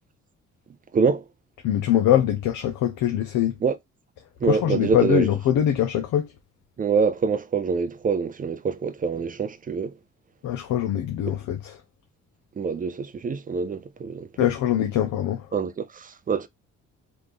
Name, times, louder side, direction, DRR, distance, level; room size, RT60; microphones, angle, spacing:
voice 1, 0.9-1.2 3.6-3.8 4.4-5.3 6.8-9.9 12.6-14.5 15.5-16.5, right 5 dB, 30° right, 0.4 m, -25 dB
voice 2, 1.6-3.5 4.5-6.3 10.4-11.7 14.4-15.5, left 11 dB, 80° left, 0.7 m, -23 dB
3.1 x 2.6 x 3.4 m
cardioid pair, 90°, 30 cm